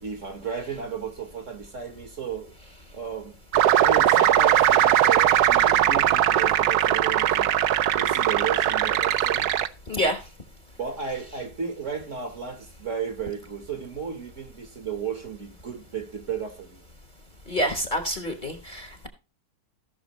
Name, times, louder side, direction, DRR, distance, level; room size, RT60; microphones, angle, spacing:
voice 1, 0.0-2.5 2.9-3.4 3.8-7.5 7.9-9.5 10.8-16.8, right 6 dB, 50° right, 1.6 m, -34 dB
sound 1, 3.5-9.7, right 11 dB, 70° right, 1.1 m, -20 dB
voice 2, 9.9-10.2 17.5-19.1, equal, 30° left, 1.2 m, -27 dB
17.0 x 6.1 x 3.0 m
omnidirectional pair, 1.9 m